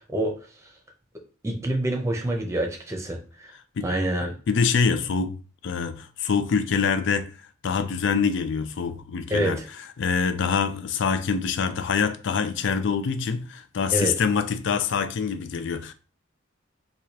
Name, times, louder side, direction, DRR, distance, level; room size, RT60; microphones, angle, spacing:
voice 1, 1.4-3.5 3.8-4.3 9.3-9.7 13.9-14.1, right 1 dB, 15° right, 0.7 m, -26 dB
voice 2, 4.5-5.4 5.6-7.3 7.6-9.6 10.0-15.9, left 6 dB, 60° left, 0.4 m, -25 dB
4.7 x 2.4 x 2.8 m
head